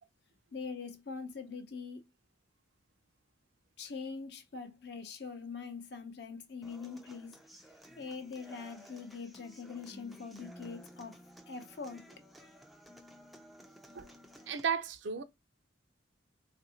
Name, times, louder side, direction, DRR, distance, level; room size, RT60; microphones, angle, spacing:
voice 1, 0.5-2.0 3.8-7.4 8.0-11.2 11.5-12.1, left 5 dB, 55° left, 0.6 m, -43 dB
Human voice / Acoustic guitar, 6.6-14.6, equal, ahead, 0.3 m, -55 dB
voice 2, 14.5-15.2, right 6 dB, 65° right, 0.5 m, -34 dB
3.4 x 2.5 x 2.7 m
head